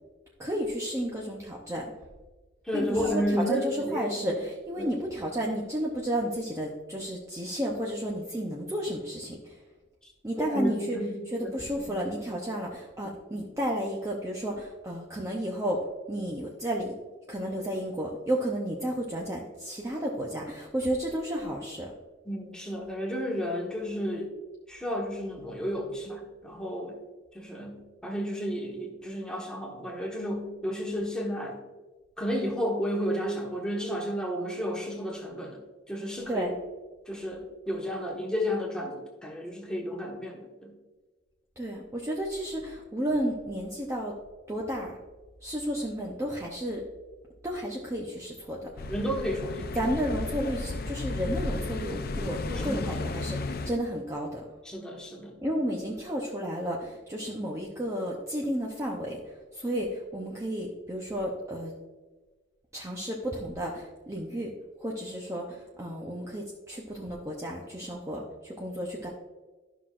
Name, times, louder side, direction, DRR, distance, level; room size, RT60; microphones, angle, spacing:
voice 1, 0.4-1.8 2.7-9.6 10.2-11.0 11.3-16.9 17.3-21.9 36.3-36.6 41.6-44.1 44.5-44.9 45.4-46.8 47.4-48.7 49.7-54.4 55.4-61.7 62.7-64.5 64.8-69.1, equal, 15° right, -2 dB, 0.7 m, -32 dB
voice 2, 2.6-4.2 4.8-4.9 10.0-10.1 10.4-12.0 13.3-13.4 22.2-24.3 24.7-27.0 27.3-27.8 28.0-31.6 32.2-35.6 35.9-36.5 37.1-40.7 48.9-49.8 52.5-53.0 54.6-55.3, equal, 5° left, -1 dB, 1.3 m, -32 dB
sound 1, 48.8-53.8, left 2 dB, 50° left, 0.5 m, -34 dB
12.0 x 5.9 x 2.5 m, 1.2 s
head